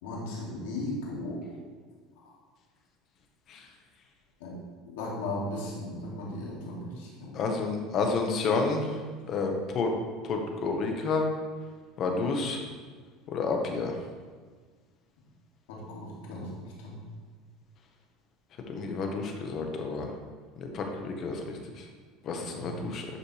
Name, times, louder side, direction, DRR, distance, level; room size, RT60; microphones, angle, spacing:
voice 1, 0.0-1.4 4.4-4.5 4.9-7.5 15.7-16.5 16.8-17.0 22.5-22.8, left 1 dB, 85° left, -4 dB, 2.7 m, -36 dB
voice 2, 7.3-8.9 9.3-9.9 10.3-11.3 12.0-12.6 13.3-14.0 18.7-20.1 20.6-21.6 22.2-23.1, left 4 dB, 45° left, 3 dB, 1.4 m, -30 dB
12.0 x 5.7 x 3.4 m, 1.5 s
supercardioid pair, 125°, 0 cm